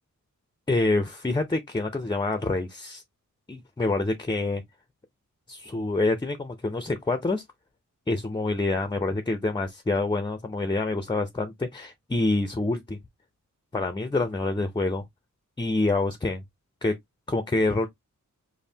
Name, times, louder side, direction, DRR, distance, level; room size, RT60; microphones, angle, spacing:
voice 1, 0.7-3.0 3.5-4.6 5.5-7.4 8.1-13.0 13.7-15.0 15.6-16.4 16.8-16.9 17.3-17.9, left 2 dB, 15° left, 0.5 m, -26 dB
5.3 x 2.0 x 2.7 m
wide cardioid pair, 120°, 32 cm